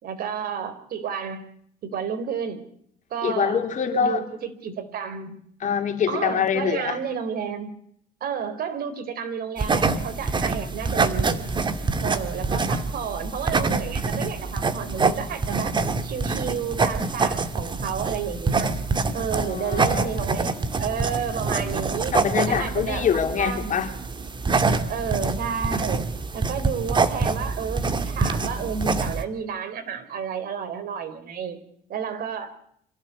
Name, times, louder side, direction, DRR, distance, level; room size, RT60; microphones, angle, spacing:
voice 1, 0.0-1.4 1.8-2.6 3.1-3.6 4.0-5.4 6.1-7.7 8.2-11.5 12.0-15.7 16.0-18.7 19.1-22.1 22.5-23.8 24.9-26.0 26.3-31.6 31.9-32.6, right 7 dB, 60° right, 9 dB, 4.2 m, -31 dB
voice 2, 3.2-4.2 5.6-7.0 19.4-20.4 22.1-23.9, left 7 dB, 50° left, 5 dB, 3.8 m, -25 dB
sound 1, 9.6-29.2, right 4 dB, 25° right, 2.2 m, -25 dB
26.5 x 16.0 x 8.4 m, 0.68 s
cardioid pair, 110°, 17 cm